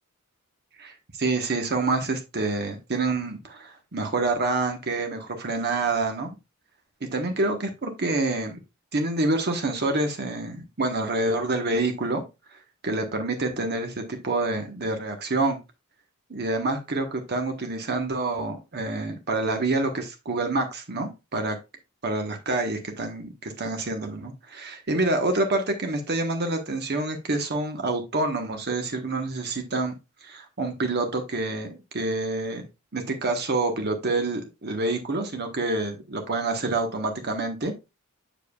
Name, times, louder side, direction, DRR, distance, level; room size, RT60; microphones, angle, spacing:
voice 1, 0.8-6.3 7.1-8.6 8.9-12.2 12.8-15.6 16.3-21.6 22.0-30.0 30.2-32.7 32.9-37.7, right 2 dB, 50° right, 4 dB, 1.1 m, -27 dB
7.3 x 7.0 x 2.3 m, 0.25 s
head